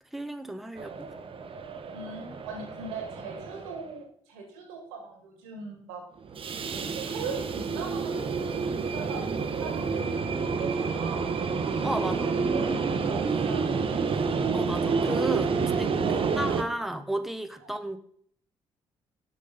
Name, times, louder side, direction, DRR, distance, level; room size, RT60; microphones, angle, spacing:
voice 1, 0.1-1.2 11.8-12.3 14.5-18.0, right 1 dB, ahead, 8 dB, 0.8 m, -33 dB
sound 1, 0.8-3.9 6.2-16.6, right 5 dB, 50° right, 0.9 m, -29 dB
voice 2, 1.9-6.0 6.7-8.5 8.9-11.4 12.0-14.2 16.0-16.4, right 4 dB, 90° right, 3 dB, 1.8 m, -40 dB
6.4 x 5.3 x 5.5 m, 0.62 s
hypercardioid pair, 50°, 12 cm